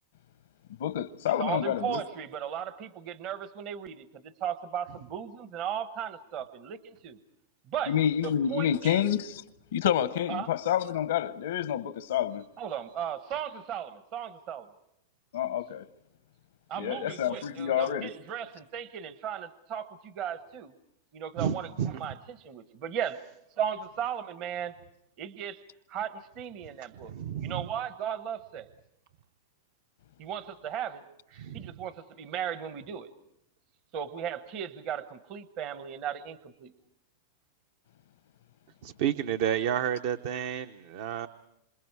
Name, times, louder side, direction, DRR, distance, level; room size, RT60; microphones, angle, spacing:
voice 1, 0.8-2.0 7.9-9.4 9.7-12.4 15.3-15.8 16.8-18.1, left 10 dB, 85° left, 0.8 m, -28 dB
voice 2, 1.4-7.2 7.7-7.9 8.2-9.1 10.3-10.5 12.6-14.7 16.7-20.7 21.1-23.2 23.6-24.7 25.2-25.6 25.9-27.1 27.4-28.7 30.2-31.0 31.5-33.1 33.9-36.7, right 9 dB, 45° right, 1.0 m, -36 dB
voice 3, 21.4-22.0 27.1-27.6 31.3-31.7 38.8-41.3, right 9 dB, 60° right, 0.8 m, -31 dB
27.5 x 27.0 x 4.7 m
supercardioid pair, 135°, 0 cm